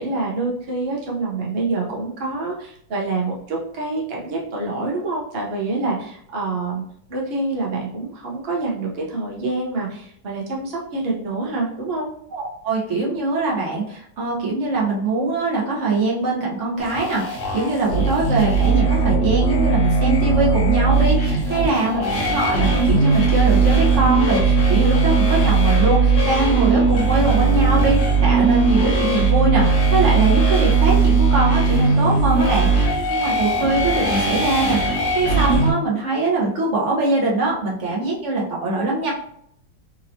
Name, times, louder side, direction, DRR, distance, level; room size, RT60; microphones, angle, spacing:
voice 1, 0.0-6.8 7.1-12.1 21.5-22.0, right 3 dB, 85° right, -3 dB, 0.5 m, -26 dB
voice 2, 12.3-39.1, right 2 dB, 45° right, -4 dB, 1.1 m, -22 dB
sound 1, 16.8-35.7, right 4 dB, 55° left, 1.4 m, -18 dB
4.4 x 2.9 x 2.7 m, 0.68 s
omnidirectional pair, 2.3 m